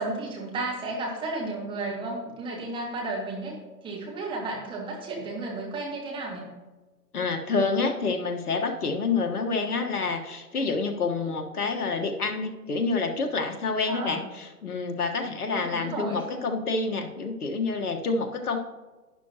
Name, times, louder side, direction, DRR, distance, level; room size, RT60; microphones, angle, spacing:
voice 1, 0.0-3.6 3.8-6.4 13.9-14.2 15.5-16.2, right 2 dB, 10° right, -1 dB, 1.7 m, -33 dB
voice 2, 7.1-18.6, left 4 dB, 65° left, 5 dB, 1.5 m, -28 dB
12.0 x 9.8 x 2.9 m, 1.2 s
figure-of-eight pair, 135°, 48 cm